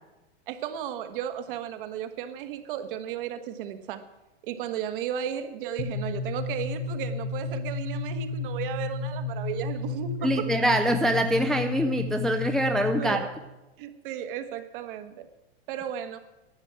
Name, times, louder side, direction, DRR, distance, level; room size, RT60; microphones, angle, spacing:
voice 1, 0.5-4.0 4.4-10.5 13.0-13.2 13.8-15.3 15.7-16.2, right 9 dB, 55° right, 8 dB, 1.5 m, -34 dB
sound 1, 5.8-13.3, left 3 dB, 40° left, 1.3 m, -32 dB
voice 2, 10.2-13.3, equal, ahead, 5 dB, 0.4 m, -24 dB
11.5 x 7.3 x 8.9 m, 1.0 s
hypercardioid pair, 135°, 32 cm